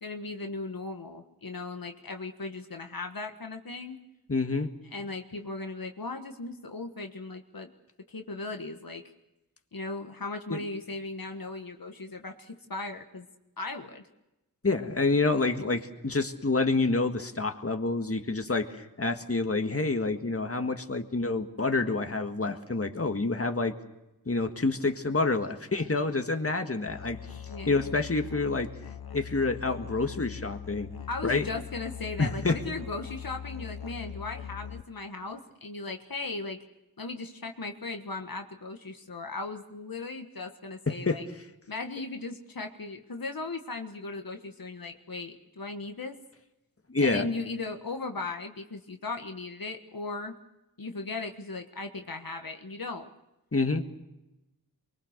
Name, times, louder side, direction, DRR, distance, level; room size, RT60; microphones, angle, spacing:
voice 1, 0.0-4.0 4.9-7.7 8.1-9.0 9.7-13.3 13.6-14.0 27.5-27.7 31.1-36.6 37.0-41.2 41.7-46.2 47.0-50.3 50.8-53.1, left 3 dB, 70° left, 5 dB, 1.5 m, -37 dB
voice 2, 4.3-4.7 10.5-10.6 14.6-23.7 24.2-28.7 29.1-30.9 31.2-31.5 32.2-32.6 40.9-41.2 46.9-47.3 53.5-53.8, left 3 dB, 40° left, 6 dB, 1.8 m, -28 dB
Musical instrument, 26.9-34.8, left 8 dB, 85° left, 1.0 m, -41 dB
24.0 x 22.0 x 6.7 m, 0.96 s
wide cardioid pair, 50°, 36 cm